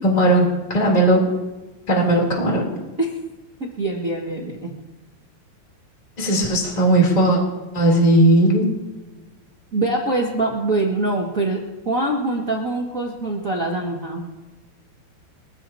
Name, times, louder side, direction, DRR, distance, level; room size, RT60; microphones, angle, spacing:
voice 1, 0.0-1.2 1.9-2.7 6.2-7.4 7.7-8.6, right 1 dB, 10° left, 0 dB, 2.6 m, -17 dB
voice 2, 3.6-4.7 9.7-14.2, right 2 dB, 80° right, -3 dB, 0.7 m, -24 dB
24.5 x 15.0 x 2.8 m, 1.2 s
omnidirectional pair, 5.0 m